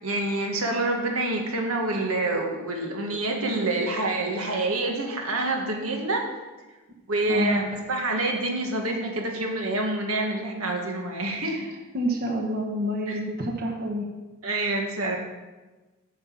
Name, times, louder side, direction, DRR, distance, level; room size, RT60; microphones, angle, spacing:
voice 1, 0.0-6.2 7.1-11.6 13.1-13.2 14.4-15.2, right 2 dB, 85° right, 1 dB, 1.7 m, -27 dB
voice 2, 7.3-7.7 11.4-14.0, equal, 45° right, 1 dB, 1.3 m, -28 dB
9.0 x 5.6 x 7.3 m, 1.2 s
head